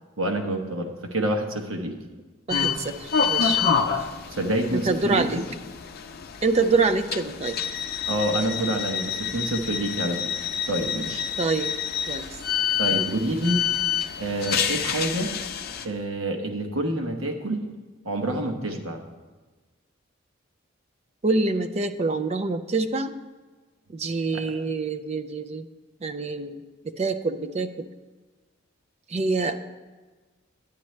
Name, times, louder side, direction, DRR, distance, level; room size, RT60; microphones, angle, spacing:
voice 1, 0.2-2.0 4.3-5.4 8.1-10.3 10.7-11.2 12.8-13.6 14.2-15.4 15.8-17.6 18.0-19.0 24.3-24.4, right 1 dB, 85° right, 3 dB, 1.1 m, -27 dB
sound 1, 2.5-15.8, left 7 dB, 50° left, 0.5 m, -28 dB
voice 2, 2.5-3.6 4.7-5.4 6.4-7.6 11.4-11.7 12.1-12.3 21.2-23.1 23.9-25.7 26.0-26.6 27.0-27.9 29.1-29.6, right 3 dB, 30° right, 9 dB, 0.4 m, -25 dB
10.5 x 9.1 x 3.2 m, 1.3 s
head